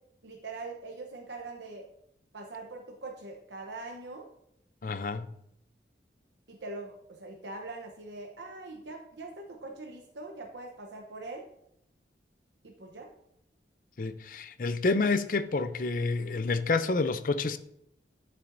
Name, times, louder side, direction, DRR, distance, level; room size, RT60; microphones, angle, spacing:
voice 1, 0.2-1.9 2.3-4.3 6.5-11.4 12.6-13.1, right 3 dB, 75° right, 0.9 m, -42 dB
voice 2, 4.8-5.3 14.0-17.6, left 3 dB, 45° left, 0.5 m, -29 dB
11.0 x 6.8 x 2.6 m
head